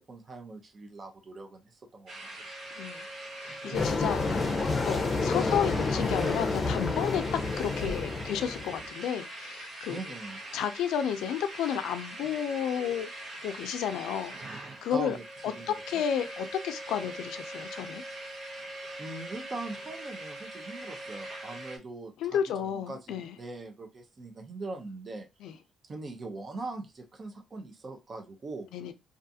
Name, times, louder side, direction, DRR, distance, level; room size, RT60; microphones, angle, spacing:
voice 1, 0.0-2.5 9.9-10.4 14.9-16.0 19.0-25.3 25.9-28.7, right 3 dB, 40° right, 0.6 m, -41 dB
sound 1, 2.1-21.8, right 1 dB, 65° right, 0.9 m, -42 dB
voice 2, 2.8-3.1 3.4-4.5 4.9-10.0 10.5-13.1 13.4-15.2 15.4-18.0 22.2-23.3 25.4-25.5 28.7-28.9, left 9 dB, 85° left, 0.4 m, -32 dB
sound 2, 3.7-8.9, left 3 dB, 35° left, 0.6 m, -29 dB
2.4 x 2.4 x 2.7 m
cardioid pair, 90°, 0 cm